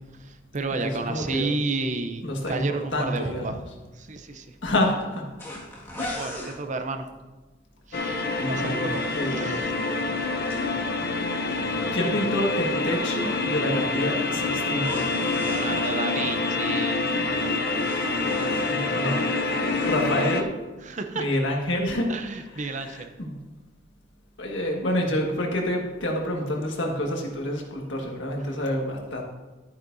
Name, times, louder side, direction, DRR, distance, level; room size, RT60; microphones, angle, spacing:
voice 1, 0.2-3.6 4.0-4.5 6.1-7.1 7.9-9.7 15.4-17.0 20.8-21.3 22.1-23.1, right 3 dB, 40° right, 7 dB, 0.7 m, -32 dB
voice 2, 0.7-1.5 2.2-3.6 4.6-5.3 6.0-6.3 8.4-8.9 9.1-9.7 11.9-14.9 18.5-19.2 19.8-20.6 21.1-22.1 22.6-23.4 24.4-29.2, left 1 dB, 70° left, 0 dB, 1.7 m, -28 dB
sound 1, 5.4-6.6 8.2-10.7 14.7-15.9 17.4-19.3 19.6-20.0, left 1 dB, 15° left, 1.9 m, -41 dB
sound 2, 7.9-20.4, left 3 dB, 55° left, 0.7 m, -26 dB
11.5 x 9.3 x 2.7 m, 1.2 s
head